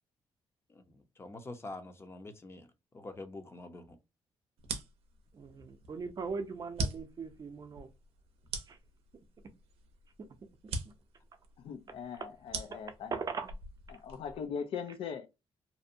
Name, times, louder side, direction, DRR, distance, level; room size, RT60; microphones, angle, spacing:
voice 1, 0.7-2.7 2.9-4.0, left 2 dB, 25° left, 0.5 m, -46 dB
sound 1, 4.6-14.5, right 3 dB, 90° right, 0.6 m, -42 dB
voice 2, 5.3-7.9 8.7-8.8 12.2-12.3 12.7-12.8 13.1-13.5, right 5 dB, 40° right, 0.5 m, -39 dB
voice 3, 11.6-13.2 13.9-15.3, left 7 dB, 75° left, 0.4 m, -40 dB
2.6 x 2.1 x 2.5 m
cardioid pair, 95°, 10 cm